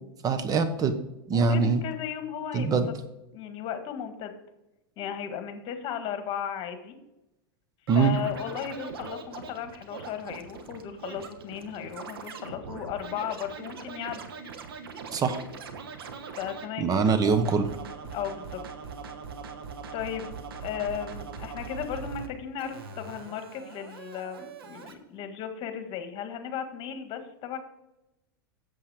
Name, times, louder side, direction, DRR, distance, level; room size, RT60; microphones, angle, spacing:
voice 1, 0.2-1.0 1.3-1.8 2.5-2.9 7.9-8.2 15.1-15.4 16.8-17.7, right 5 dB, 30° right, 9 dB, 1.0 m, -23 dB
voice 2, 1.3-2.8 3.3-4.3 5.0-7.0 7.9-14.2 16.3-16.9 18.1-18.6 19.9-27.6, left 8 dB, 45° left, 8 dB, 1.6 m, -35 dB
Scratching (performance technique), 7.9-16.7 17.0-22.3 22.6-24.9, right 5 dB, 80° right, 1.2 m, -41 dB
8.7 x 7.5 x 4.9 m, 0.92 s
hypercardioid pair, 100°, 12 cm